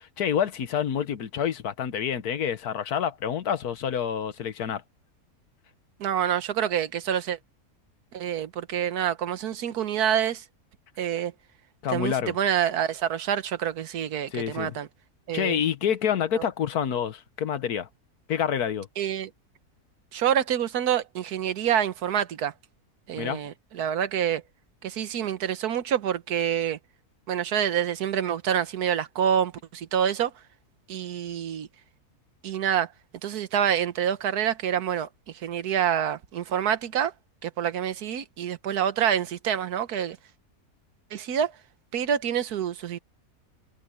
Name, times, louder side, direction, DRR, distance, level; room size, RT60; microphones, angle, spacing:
voice 1, 0.0-4.8 11.8-12.4 14.3-14.8 15.3-17.9 18.3-18.9 23.2-23.4, left 8 dB, 85° left, 1.6 m, -28 dB
voice 2, 6.0-7.4 8.1-10.4 11.0-11.3 11.9-14.9 15.3-15.6 16.3-16.4 19.0-19.3 20.1-22.5 23.1-24.4 24.8-26.8 27.3-30.3 30.9-31.7 32.4-32.9 33.2-35.1 35.3-37.1 37.4-40.2 41.1-41.5 41.9-43.0, right 9 dB, 85° right, 1.5 m, -27 dB
omnidirectional pair, 1.6 m